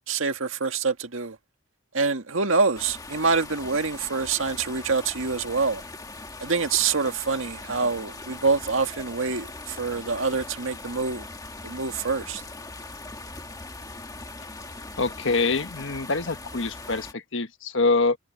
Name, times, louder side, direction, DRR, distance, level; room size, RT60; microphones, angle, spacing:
voice 1, 0.1-1.4 1.9-5.8 6.4-11.2 11.6-12.4, right 4 dB, 90° right, 1.9 m, -26 dB
sound 1, 2.8-17.1, left 2 dB, 20° left, 1.6 m, -40 dB
voice 2, 15.0-18.2, left 3 dB, 70° left, 1.4 m, -25 dB
head